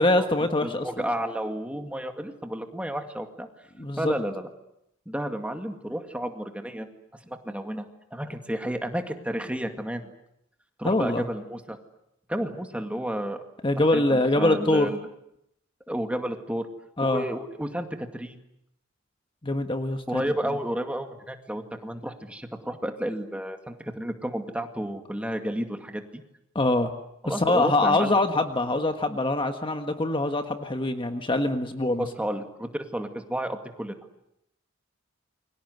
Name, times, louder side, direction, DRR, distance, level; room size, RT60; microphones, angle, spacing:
voice 1, 0.0-1.0 3.8-4.1 10.8-11.2 13.6-14.9 17.0-17.2 19.4-20.2 26.5-26.9 27.2-32.1, left 2 dB, 25° left, 6 dB, 1.5 m, -24 dB
voice 2, 0.6-3.5 4.0-4.5 5.1-6.9 7.2-10.1 10.8-11.8 12.3-13.4 13.9-15.1 15.9-16.7 17.0-18.4 20.1-26.2 27.2-28.2 32.0-34.0, right 1 dB, 5° right, 5 dB, 2.2 m, -31 dB
29.0 x 23.5 x 8.1 m, 0.80 s
head